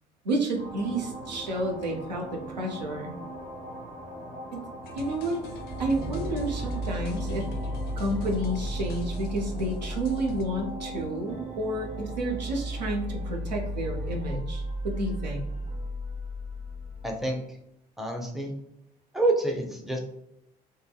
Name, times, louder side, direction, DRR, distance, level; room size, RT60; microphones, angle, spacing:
voice 1, 0.2-3.1 4.5-4.6 4.9-5.4 5.8-7.5 8.0-15.5, right 1 dB, 90° right, 1 dB, 0.4 m, -30 dB
sound 1, 0.5-14.7, right 1 dB, 60° right, 1.1 m, -40 dB
sound 2, 4.8-10.5, left 5 dB, 50° left, 0.4 m, -45 dB
sound 3, 5.4-17.1, equal, 35° right, 0.9 m, -35 dB
voice 2, 17.0-17.4 18.0-18.5 19.1-20.0, right 2 dB, ahead, 1 dB, 0.6 m, -27 dB
2.6 x 2.6 x 2.2 m, 0.81 s
hypercardioid pair, 55°, 21 cm